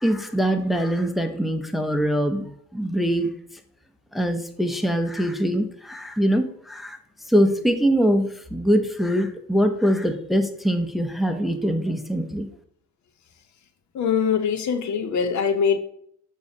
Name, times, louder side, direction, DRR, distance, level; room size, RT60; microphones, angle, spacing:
voice 1, 0.0-3.3 4.1-7.0 7.3-12.5, equal, ahead, 0.6 m, -23 dB
voice 2, 13.9-15.8, left 6 dB, 70° left, 0.9 m, -22 dB
6.7 x 2.8 x 5.3 m
cardioid pair, 90°, 30 cm